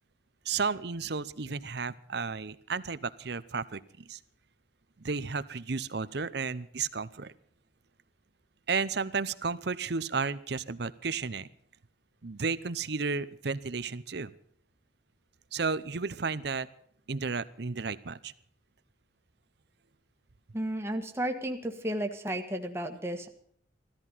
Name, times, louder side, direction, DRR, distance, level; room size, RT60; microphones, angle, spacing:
voice 1, 0.4-4.2 5.0-7.3 8.7-11.5 12.2-14.3 15.5-16.7 17.1-18.3, right 5 dB, 60° right, 16 dB, 0.7 m, -33 dB
voice 2, 20.5-23.3, right 1 dB, 15° right, 4 dB, 1.6 m, -33 dB
16.5 x 13.5 x 5.7 m, 0.62 s
head